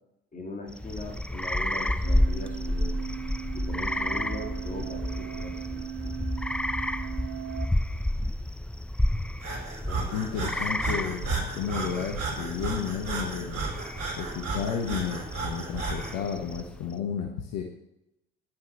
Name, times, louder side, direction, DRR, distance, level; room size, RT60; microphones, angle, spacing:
voice 1, 0.3-3.1 3.5-6.2 9.9-10.1, left 2 dB, 25° left, 2 dB, 3.2 m, -40 dB
sound 1, 0.7-16.9, left 1 dB, 5° left, 0.6 m, -31 dB
sound 2, 2.0-7.7, right 11 dB, 35° right, 0.8 m, -38 dB
Breathing, 9.4-16.2, right 3 dB, 55° right, 4.6 m, -33 dB
voice 2, 10.1-13.6 14.1-17.6, left 7 dB, 55° left, 3 dB, 1.3 m, -32 dB
11.0 x 7.7 x 6.2 m, 0.86 s
figure-of-eight pair, 60°, 31 cm